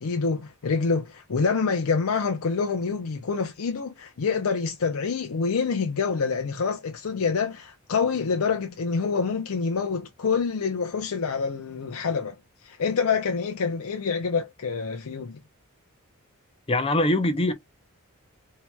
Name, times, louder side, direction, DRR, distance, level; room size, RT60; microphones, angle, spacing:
voice 1, 0.0-12.4 12.6-15.4, left 5 dB, 75° left, 0.5 m, -26 dB
voice 2, 16.7-17.5, left 1 dB, 25° left, 0.6 m, -22 dB
4.3 x 2.8 x 2.2 m
head